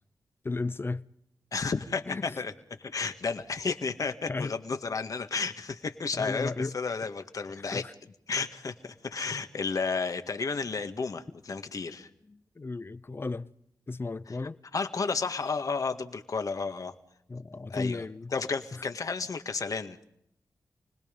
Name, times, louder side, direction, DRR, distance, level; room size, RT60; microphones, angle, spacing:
voice 1, 0.4-1.1 2.1-2.4 4.3-4.5 6.1-6.7 7.6-7.9 12.0-13.5 13.9-14.6 17.3-18.3 18.7-18.8, left 3 dB, 35° left, 0.8 m, -35 dB
voice 2, 1.5-2.5 2.8-7.8 8.3-12.1 14.7-16.9 17.7-18.0 18.3-20.0, left 4 dB, 55° left, 1.9 m, -32 dB
29.0 x 20.5 x 5.4 m
wide cardioid pair, 90°, 7 cm